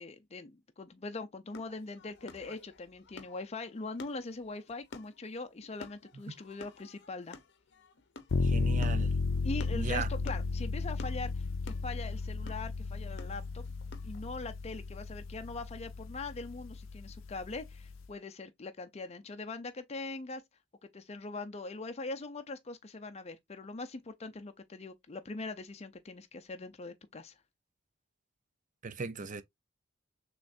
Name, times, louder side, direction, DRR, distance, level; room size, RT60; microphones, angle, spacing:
voice 1, 0.0-7.4 9.4-13.7 14.0-20.4 20.9-27.3, left 3 dB, 35° left, 0.6 m, -42 dB
sound 1, 1.5-14.2, left 3 dB, 60° left, 0.8 m, -52 dB
sound 2, 8.3-18.0, left 3 dB, 80° left, 0.5 m, -34 dB
voice 2, 8.4-9.1 9.7-10.1 28.8-29.4, right 5 dB, 40° right, 0.6 m, -37 dB
6.2 x 3.2 x 2.6 m
head